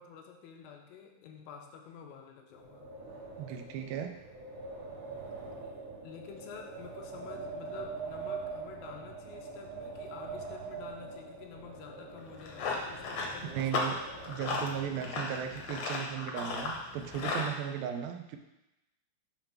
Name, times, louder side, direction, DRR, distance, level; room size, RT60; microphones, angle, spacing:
voice 1, 0.0-2.9 5.6-13.9, left 7 dB, 85° left, 3 dB, 2.4 m, -49 dB
Wind, 2.5-15.1, right 4 dB, 55° right, 1.8 m, -44 dB
voice 2, 3.4-4.1 13.4-14.0 14.3-18.4, right 9 dB, 85° right, 6 dB, 2.4 m, -36 dB
Run, 12.2-17.5, left 3 dB, 65° left, 1.7 m, -36 dB
7.3 x 3.4 x 5.8 m, 0.94 s
omnidirectional pair, 4.2 m